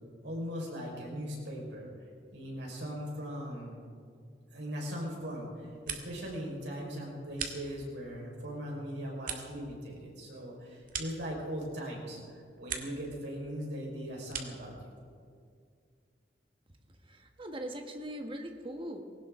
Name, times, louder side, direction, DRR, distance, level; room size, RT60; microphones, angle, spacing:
voice 1, 0.2-1.9 2.3-3.8 4.5-12.2 12.6-14.7, equal, 80° right, -2 dB, 4.7 m, -39 dB
sound 1, 5.5-6.4 6.7-8.1 8.5-11.8 12.2-13.1 13.4-14.7, right 6 dB, 50° right, 1.5 m, -43 dB
voice 2, 17.1-19.0, right 1 dB, 30° right, 4 dB, 1.4 m, -40 dB
20.0 x 17.5 x 3.7 m, 2.2 s
head